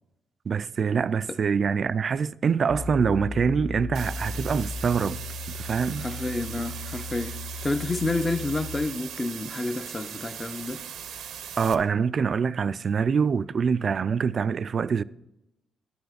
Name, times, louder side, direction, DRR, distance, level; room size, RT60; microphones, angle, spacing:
voice 1, 0.5-5.2 5.5-6.0 11.6-15.0, right 6 dB, 50° right, 0.3 m, -25 dB
sound 1, 2.7-8.9, left 3 dB, 85° left, 2.1 m, -36 dB
sound 2, 3.9-11.7, right 8 dB, 80° right, 0.7 m, -39 dB
voice 2, 6.0-7.4 7.6-10.8, left 2 dB, 25° left, 0.7 m, -29 dB
10.5 x 6.9 x 6.4 m
cardioid pair, 80°, 0 cm